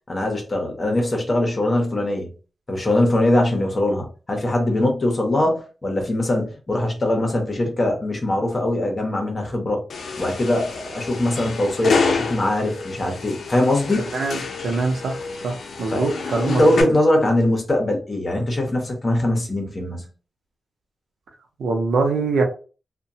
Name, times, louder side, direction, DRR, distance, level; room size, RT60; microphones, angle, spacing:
voice 1, 0.1-2.3 2.7-9.8 10.2-14.0 15.9-16.1 16.4-20.1, left 1 dB, 25° left, 0.8 m, -21 dB
sound 1, 9.9-16.8, left 4 dB, 65° left, 0.5 m, -28 dB
voice 2, 14.1-16.8 21.6-22.4, right 3 dB, 90° right, 0.6 m, -23 dB
2.8 x 2.2 x 2.7 m
wide cardioid pair, 165°, 0 cm